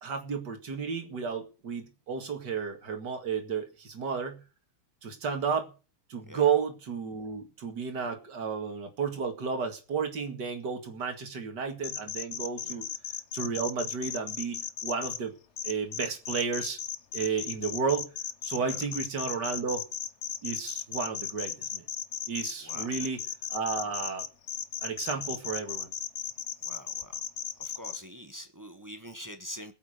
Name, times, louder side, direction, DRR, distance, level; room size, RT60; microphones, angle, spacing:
voice 1, 0.0-4.4 5.0-5.7 6.1-12.9 13.3-15.3 15.6-16.8 17.1-18.1 18.4-19.8 20.4-21.8 22.3-23.2 23.5-24.3 24.8-25.9, right 6 dB, 50° right, 2.6 m, -32 dB
sound 1, 11.8-15.2 15.6-28.0, left 8 dB, 80° left, 0.6 m, -35 dB
voice 2, 26.6-27.3 27.6-29.7, equal, 15° right, 0.8 m, -45 dB
21.0 x 8.6 x 5.0 m
omnidirectional pair, 2.4 m